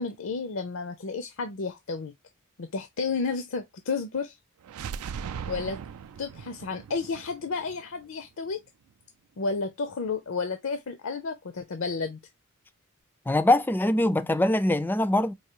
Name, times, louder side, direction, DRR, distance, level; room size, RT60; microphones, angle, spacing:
voice 1, 0.0-2.1 2.6-4.4 5.5-5.8 6.2-8.6 9.4-12.2, left 4 dB, 65° left, 0.5 m, -31 dB
sound 1, 4.6-8.5, right 7 dB, 85° right, 0.4 m, -39 dB
voice 2, 13.3-15.3, left 1 dB, 10° left, 0.3 m, -23 dB
4.6 x 2.7 x 2.9 m
head